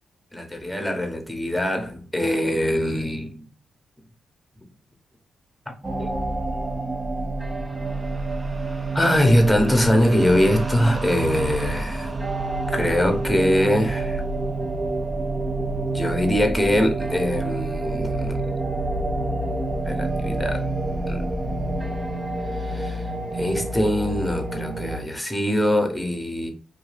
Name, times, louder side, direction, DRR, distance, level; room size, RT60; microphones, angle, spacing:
voice 1, 0.3-3.4 6.0-6.1 8.9-12.1 12.7-14.2 15.9-18.4 19.8-20.6 21.1-21.2 22.6-23.1 23.3-26.5, left 1 dB, 5° left, 0.9 m, -22 dB
sound 1, 5.8-25.0, right 2 dB, 30° right, 0.5 m, -27 dB
2.7 x 2.3 x 3.2 m
supercardioid pair, 60°, 0 cm